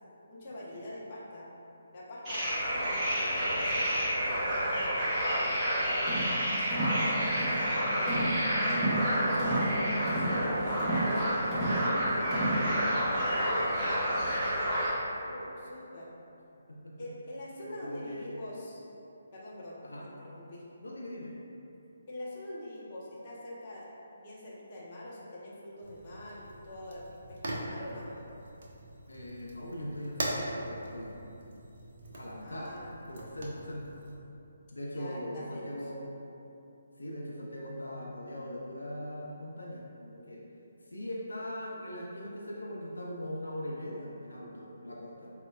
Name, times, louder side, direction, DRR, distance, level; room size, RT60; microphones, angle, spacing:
voice 1, 0.3-1.5 1.9-6.3 9.3-12.2 15.2-16.1 17.0-18.8 19.3-20.6 22.1-23.9 24.2-28.1 32.4-33.0 34.9-35.6, left 1 dB, 35° left, -6 dB, 0.7 m, -44 dB
sound 1, 2.2-14.9, equal, 25° right, 1.0 m, -29 dB
voice 2, 5.1-6.3 7.6-8.3 11.7-14.1 16.7-17.1 17.6-18.5 19.8-20.1 20.8-21.3 29.1-31.2 32.1-32.7 33.1-34.0 34.7-36.0 37.0-40.4 40.9-45.3, left 1 dB, 85° left, -3 dB, 0.4 m, -41 dB
sound 2, 6.1-6.3 6.7-7.0 7.4-7.6 8.1-8.4 8.7-9.1 9.4-9.7 10.1-10.4 10.8-11.1 11.5-11.8 12.3-12.6, right 1 dB, 5° right, 0.7 m, -31 dB
Fire, 25.8-34.2, right 1 dB, 55° right, 0.5 m, -41 dB
4.1 x 2.1 x 2.3 m, 2.8 s
figure-of-eight pair, 145°, 0 cm